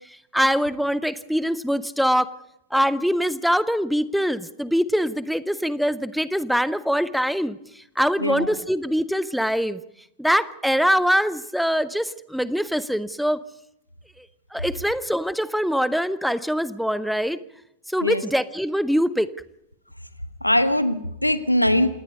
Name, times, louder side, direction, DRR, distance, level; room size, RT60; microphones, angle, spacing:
voice 1, 0.3-2.3 2.7-9.8 10.2-13.4 14.2-14.3 14.5-17.4 17.9-19.3, equal, ahead, 16 dB, 0.8 m, -23 dB
voice 2, 8.2-8.5 18.0-18.2 20.4-21.9, left 1 dB, 85° left, 13 dB, 1.2 m, -21 dB
27.5 x 18.5 x 5.4 m, 0.79 s
figure-of-eight pair, 90°, 0 cm